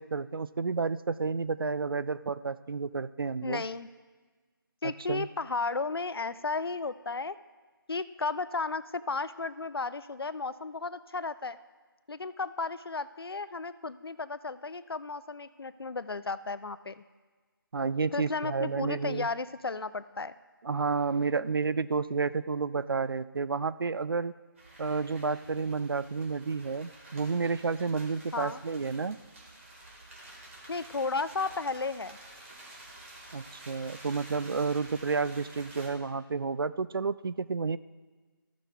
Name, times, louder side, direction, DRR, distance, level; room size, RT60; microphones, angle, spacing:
voice 1, 0.0-3.6 4.8-5.3 17.7-19.3 20.6-24.3 24.8-29.2 33.3-37.8, right 4 dB, 70° right, 15 dB, 0.4 m, -31 dB
voice 2, 3.4-3.9 4.8-7.4 7.9-11.6 12.1-17.0 18.1-20.3 28.3-28.6 30.7-32.2, left 4 dB, 90° left, 15 dB, 0.5 m, -34 dB
sound 1, 24.6-35.9, right 1 dB, 35° right, 2.2 m, -50 dB
14.5 x 6.1 x 3.4 m, 1.4 s
figure-of-eight pair, 165°, 12 cm